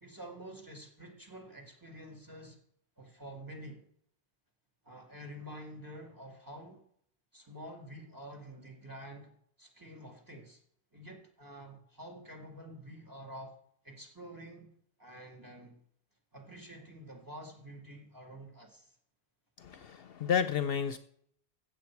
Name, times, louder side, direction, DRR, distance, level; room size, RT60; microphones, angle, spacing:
voice 1, 0.0-2.6 3.0-3.8 4.8-6.8 7.3-10.6 10.9-13.6 13.8-15.8 16.3-18.9, right 1 dB, 20° right, 3 dB, 2.2 m, -48 dB
voice 2, 19.6-21.0, left 7 dB, 65° left, 11 dB, 0.8 m, -31 dB
15.5 x 7.6 x 4.6 m, 0.68 s
omnidirectional pair, 1.1 m